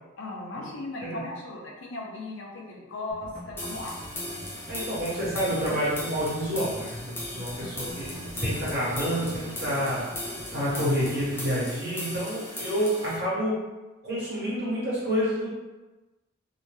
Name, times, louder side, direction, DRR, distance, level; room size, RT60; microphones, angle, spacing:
voice 1, 0.2-3.9 7.3-7.7, left 2 dB, 65° left, -1 dB, 0.5 m, -37 dB
sound 1, 3.1-11.6, equal, 35° right, 0.7 m, -45 dB
sound 2, 3.6-13.2, left 1 dB, 10° left, 0.4 m, -38 dB
voice 2, 4.7-13.6 14.0-15.5, equal, 50° right, -8 dB, 1.2 m, -29 dB
sound 3, 7.9-12.1, left 2 dB, 85° right, 0.7 m, -48 dB
2.7 x 2.1 x 3.1 m, 1.1 s
head